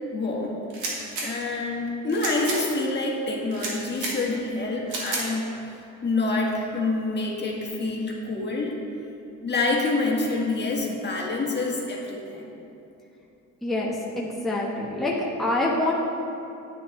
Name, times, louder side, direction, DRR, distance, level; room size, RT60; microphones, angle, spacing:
voice 1, 0.1-0.6 1.2-5.5 6.0-8.8 9.4-12.5, left 3 dB, 35° left, -2 dB, 1.7 m, -27 dB
sound 1, 0.7-1.3 2.1-2.6 3.5-4.1 4.9-5.2, right 3 dB, 85° right, 2.2 m, -31 dB
voice 2, 13.6-15.1 15.4-15.9, left 2 dB, ahead, -5 dB, 1.3 m, -26 dB
9.9 x 9.2 x 3.3 m, 2.9 s
cardioid pair, 90°, 30 cm